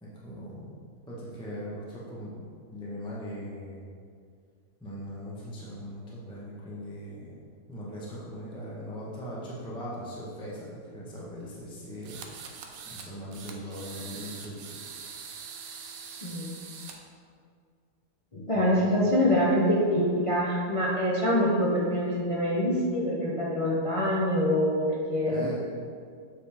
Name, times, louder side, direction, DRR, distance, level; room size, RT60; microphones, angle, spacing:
voice 1, 0.0-2.4 2.7-3.9 4.8-7.4 7.7-12.5 12.8-14.8 15.1-15.3 25.2-25.5, equal, 5° left, -7 dB, 0.9 m, -40 dB
sound 1, 12.0-13.1 13.3-16.9, right 6 dB, 65° right, 1.1 m, -43 dB
voice 2, 16.2-16.6 18.3-25.5, equal, 35° left, -5 dB, 0.5 m, -25 dB
7.8 x 4.9 x 3.5 m, 2.2 s
omnidirectional pair, 1.7 m